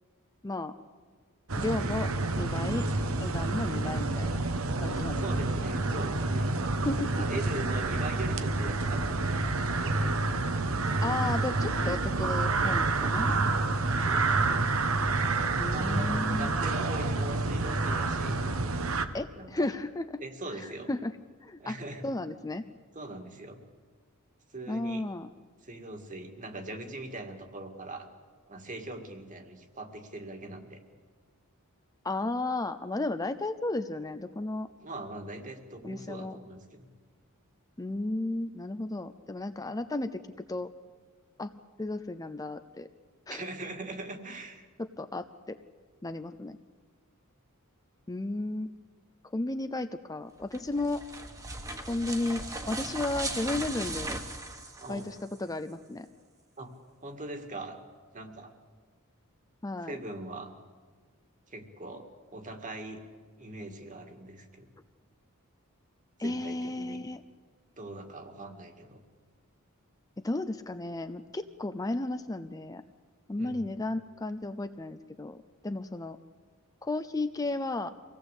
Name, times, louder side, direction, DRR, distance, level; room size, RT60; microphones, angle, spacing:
voice 1, 0.4-0.7 1.6-2.1 2.4-2.9 3.2-4.4 4.8-5.5 6.8-7.1 11.0-13.4 15.6-16.5 19.1-20.2 20.6-21.1 21.4-21.8 22.0-22.6 24.7-25.3 32.0-34.7 35.8-36.4 37.8-40.2 40.5-40.7 41.4-41.5 41.8-42.9 43.3-43.4 44.8-45.6 46.0-46.6 48.1-48.7 49.3-51.0 51.9-54.2 54.9-56.1 59.6-60.0 66.2-67.2 70.2-72.8 73.3-75.4 75.6-76.2 76.8-77.9, left 2 dB, 15° left, 10 dB, 0.6 m, -33 dB
sound 1, 1.5-19.1, right 3 dB, 70° right, 1.2 m, -28 dB
voice 2, 5.1-6.6 7.1-10.1 13.2-13.7 14.0-14.6 15.7-18.5 19.3-19.7 20.2-20.9 21.6-22.1 22.9-23.6 24.5-25.1 25.6-28.1 28.5-30.8 34.8-36.9 43.3-44.7 54.8-55.1 56.6-56.7 57.0-57.8 58.1-58.5 59.8-60.5 61.5-63.0 63.4-64.7 66.2-67.0 67.8-69.0 73.4-73.7, right 2 dB, 35° right, 5 dB, 2.1 m, -41 dB
sound 2, 50.4-55.4, right 2 dB, 15° right, 1.5 m, -38 dB
25.0 x 17.5 x 8.3 m, 1.5 s
head